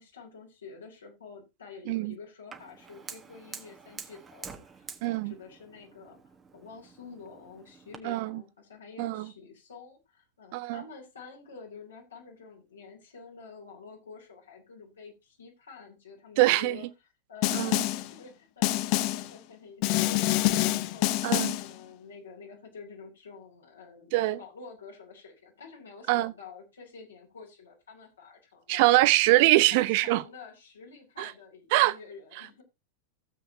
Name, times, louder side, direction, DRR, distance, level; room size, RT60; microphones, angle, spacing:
voice 1, 0.0-6.2 6.5-16.9 17.3-21.1 21.5-28.9 29.4-32.6, left 5 dB, 70° left, 3.0 m, -48 dB
Fire, 2.5-8.0, right 5 dB, 20° right, 1.3 m, -47 dB
voice 2, 5.0-5.3 8.0-8.4 9.0-9.3 10.5-10.8 16.4-16.8 17.5-17.7 21.2-21.5 24.1-24.4 26.1-26.3 28.7-30.2 31.2-31.3 31.7-31.9, right 18 dB, 50° right, 0.4 m, -23 dB
Snare drum, 17.4-18.1 18.6-19.3 19.8-21.7, left 17 dB, 45° left, 0.6 m, -26 dB
16.0 x 7.7 x 2.8 m
figure-of-eight pair, 90°, 0 cm